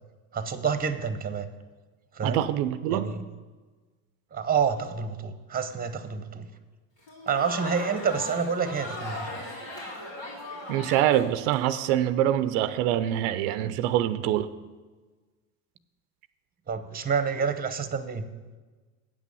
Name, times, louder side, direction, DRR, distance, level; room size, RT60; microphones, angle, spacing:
voice 1, 0.3-1.5 2.1-2.4 2.9-3.2 4.3-6.5 7.3-9.3 16.7-18.3, right 6 dB, 20° right, 0.9 m, -28 dB
voice 2, 2.2-3.1 10.7-14.5, right 12 dB, 85° right, 0.6 m, -25 dB
Crowd, 7.0-11.8, left 1 dB, 90° left, 3.3 m, -38 dB
8.6 x 6.2 x 7.0 m
supercardioid pair, 90°, 46 cm